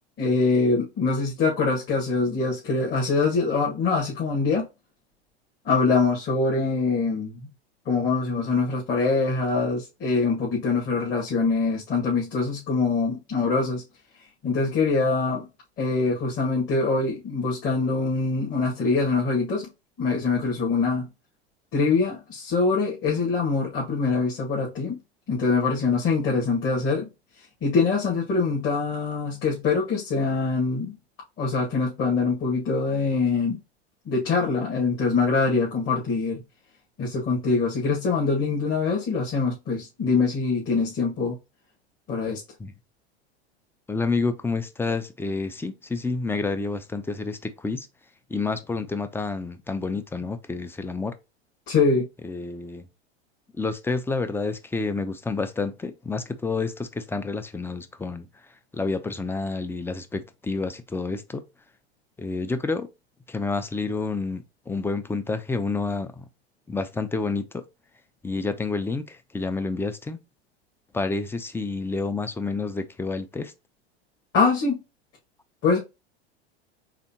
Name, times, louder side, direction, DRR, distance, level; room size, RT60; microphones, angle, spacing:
voice 1, 0.2-4.7 5.6-7.5 7.9-13.8 14.4-15.5 15.8-19.7 20.0-21.1 21.7-25.0 25.3-27.1 27.6-30.9 31.4-33.6 34.1-36.4 37.0-41.4 42.1-42.4 51.7-52.1 74.3-74.8 75.6-75.8, left 4 dB, 35° left, 2.0 m, -24 dB
voice 2, 43.9-47.9 48.3-51.1 52.2-52.8 53.6-58.3 58.7-61.4 62.2-62.9 63.3-66.3 66.7-67.6 68.2-70.2 70.9-73.5, left 3 dB, 5° left, 0.5 m, -29 dB
4.1 x 3.5 x 2.9 m
hypercardioid pair, 90°, 33 cm